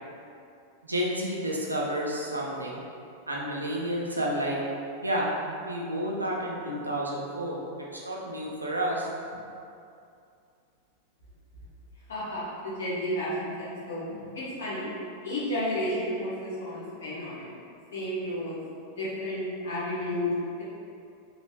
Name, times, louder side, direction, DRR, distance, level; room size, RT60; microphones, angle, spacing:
voice 1, 0.8-2.8 3.3-4.6 5.0-5.3 5.7-7.6 8.0-9.1, right 1 dB, 80° right, -3 dB, 0.6 m, -30 dB
voice 2, 12.1-14.0 14.3-14.9 15.2-17.5 17.9-18.6 19.0-20.3, left 1 dB, 65° left, -9 dB, 1.4 m, -32 dB
3.5 x 3.0 x 3.2 m, 2.5 s
figure-of-eight pair, 90°, 0 cm